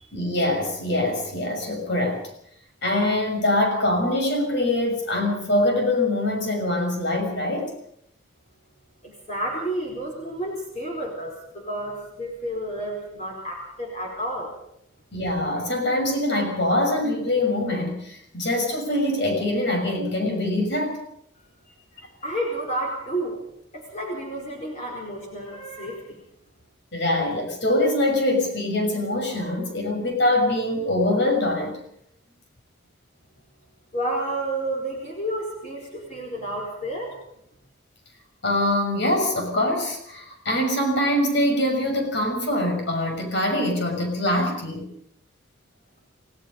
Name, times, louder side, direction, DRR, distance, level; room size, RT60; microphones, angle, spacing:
voice 1, 0.1-2.2 2.8-7.7 15.1-21.0 26.9-31.8 38.4-44.9, left 1 dB, 60° left, 3 dB, 6.5 m, -24 dB
voice 2, 9.0-14.5 21.3-21.7 22.2-23.4 23.7-26.2 33.9-37.2, right 1 dB, 35° left, 0 dB, 4.7 m, -31 dB
28.5 x 17.0 x 5.5 m, 0.74 s
head